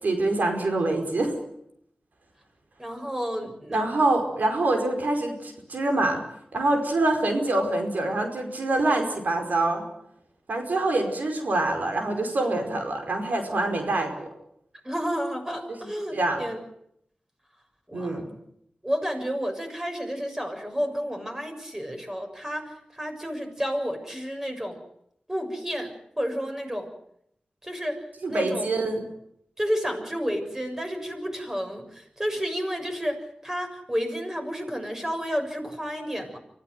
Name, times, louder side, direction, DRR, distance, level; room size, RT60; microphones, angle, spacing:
voice 1, 0.0-1.3 3.7-6.2 6.5-9.9 10.5-14.3 16.1-16.4 17.9-18.3 28.2-29.0, right 2 dB, 80° right, 4 dB, 5.1 m, -25 dB
voice 2, 2.8-3.9 14.8-16.6 17.9-18.2 18.8-24.8 25.3-26.9 27.6-28.0 28.3-28.7 29.6-36.4, equal, 15° right, 4 dB, 6.8 m, -31 dB
25.0 x 15.5 x 9.4 m, 0.74 s
cardioid pair, 45°, 3 cm